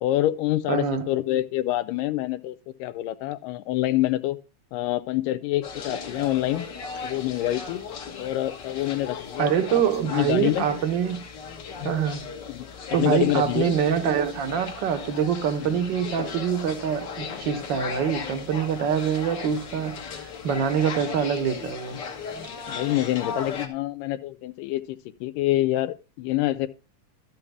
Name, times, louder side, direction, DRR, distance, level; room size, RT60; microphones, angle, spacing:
voice 1, 0.0-4.4 4.7-6.7 7.0-7.8 8.2-9.8 10.1-10.7 11.8-11.9 12.5-13.8 15.6-15.8 22.7-26.7, left 15 dB, 85° left, 2.3 m, -26 dB
voice 2, 0.7-1.1 9.4-11.2 11.8-12.2 12.9-19.9 20.4-22.0, right 8 dB, 65° right, 1.1 m, -25 dB
sound 1, 5.6-23.7, left 5 dB, 65° left, 1.0 m, -37 dB
12.5 x 7.8 x 3.4 m
omnidirectional pair, 3.8 m